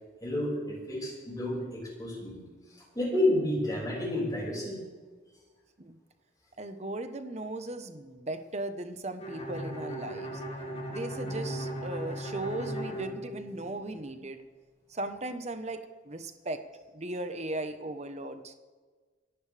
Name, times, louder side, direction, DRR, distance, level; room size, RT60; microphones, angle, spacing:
voice 1, 0.2-2.4 2.7-4.8, left 1 dB, 20° left, -4 dB, 5.6 m, -30 dB
voice 2, 6.6-10.4 10.9-14.4 14.9-16.6 16.9-18.5, right 2 dB, 40° right, 8 dB, 1.1 m, -37 dB
Bowed string instrument, 9.2-14.0, right 1 dB, 35° left, 3.5 m, -37 dB
26.5 x 11.5 x 3.4 m, 1.4 s
head